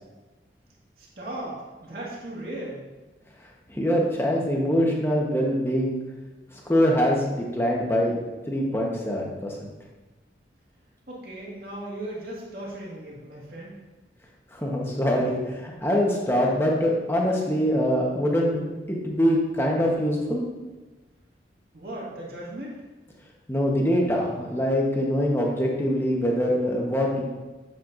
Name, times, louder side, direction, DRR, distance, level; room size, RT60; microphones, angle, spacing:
voice 1, 1.0-2.9 11.1-13.7 21.7-22.9, right 1 dB, 60° right, -5 dB, 1.9 m, -37 dB
voice 2, 3.7-6.0 6.5-8.1 8.5-9.7 14.5-20.4 23.5-27.2, equal, 15° left, -2 dB, 1.1 m, -24 dB
8.0 x 7.2 x 2.6 m, 1.2 s
head